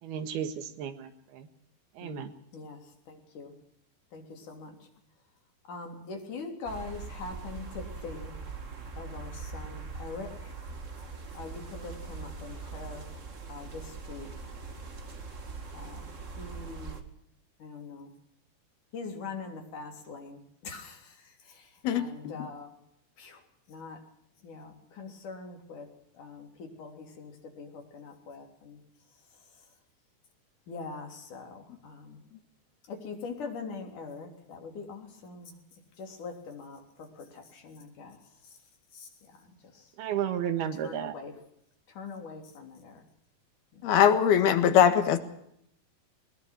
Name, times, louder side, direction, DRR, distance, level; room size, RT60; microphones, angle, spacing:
voice 1, 0.0-1.5 2.0-2.3 40.0-41.2, right 9 dB, 90° right, 9 dB, 3.5 m, -33 dB
voice 2, 2.0-3.5 4.1-4.9 5.6-8.3 9.0-10.5 11.3-13.1 13.5-14.3 15.7-16.1 16.4-17.0 17.6-18.1 18.9-22.7 23.2-23.4 23.7-24.0 24.4-25.9 26.1-28.8 30.7-32.2 32.9-35.5 36.0-38.2 38.9-39.9 40.8-41.3 41.9-43.0 43.7-43.9, left 4 dB, 55° left, 3 dB, 4.8 m, -43 dB
sound 1, 6.6-17.0, right 4 dB, 35° right, 1.2 m, -42 dB
voice 3, 21.8-22.5 43.8-45.2, left 9 dB, 85° left, 9 dB, 3.6 m, -22 dB
21.0 x 20.5 x 6.2 m, 0.73 s
omnidirectional pair, 4.4 m